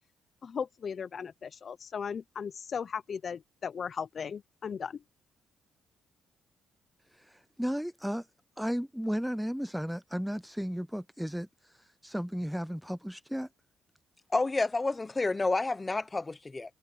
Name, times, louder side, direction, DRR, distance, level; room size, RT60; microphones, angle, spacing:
voice 1, 0.4-5.0, left 6 dB, 50° left, 0.7 m, -37 dB
voice 2, 7.1-8.3 8.6-13.5, equal, ahead, 0.5 m, -34 dB
voice 3, 14.3-16.7, left 3 dB, 20° left, 1.0 m, -29 dB
cardioid pair, 90°, 0 cm